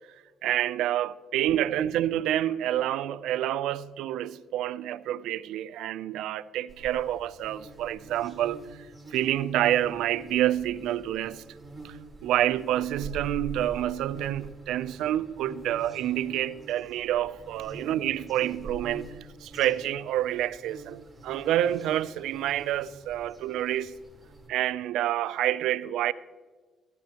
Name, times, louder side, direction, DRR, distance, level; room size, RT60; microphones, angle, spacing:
voice 1, 0.4-8.6 9.1-11.4 11.8-12.0 12.2-19.1 19.4-23.9 24.5-26.1, right 12 dB, 90° right, 0.4 m, -28 dB
sound 1, 6.7-24.5, right 2 dB, 15° right, 3.5 m, -46 dB
15.5 x 12.5 x 2.9 m
cardioid pair, 90°, 0 cm